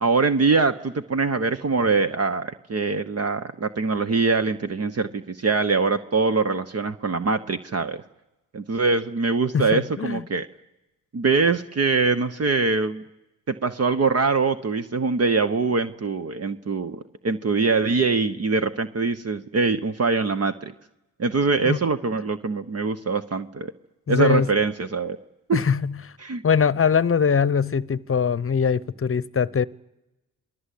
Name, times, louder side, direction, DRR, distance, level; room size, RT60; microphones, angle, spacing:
voice 1, 0.0-8.0 8.5-10.5 11.1-13.0 13.5-20.7 21.2-23.7 24.1-25.2 25.5-25.6 26.2-26.4, right 4 dB, 45° right, 1.1 m, -23 dB
voice 2, 9.5-10.2 21.6-21.8 24.1-24.5 25.5-26.1 26.4-29.7, left 6 dB, 40° left, 0.9 m, -22 dB
28.0 x 20.0 x 8.5 m
supercardioid pair, 50°, 35 cm